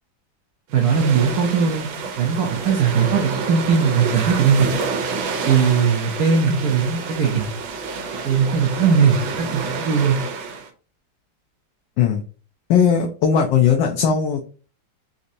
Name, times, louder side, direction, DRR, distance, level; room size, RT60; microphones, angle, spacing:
voice 1, 0.7-1.9 2.2-4.7 5.5-7.5 8.2-10.2, right 6 dB, 70° right, 2 dB, 0.9 m, -19 dB
sound 1, 0.7-10.7, right 4 dB, 85° right, 1.4 m, -29 dB
voice 2, 12.7-14.4, left 7 dB, 75° left, 2 dB, 1.2 m, -18 dB
4.0 x 2.6 x 2.6 m, 0.37 s
omnidirectional pair, 2.1 m